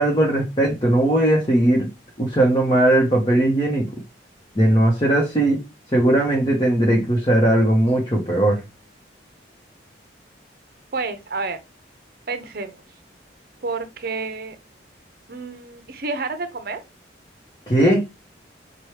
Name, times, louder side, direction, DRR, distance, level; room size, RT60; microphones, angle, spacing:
voice 1, 0.0-1.9 2.2-3.9 4.5-5.6 5.9-8.6 17.7-18.0, right 1 dB, 25° left, 1.0 m, -18 dB
voice 2, 10.9-11.6 12.3-12.8 13.6-14.6 15.3-16.8, right 3 dB, 55° right, 0.7 m, -29 dB
5.8 x 2.3 x 3.2 m
head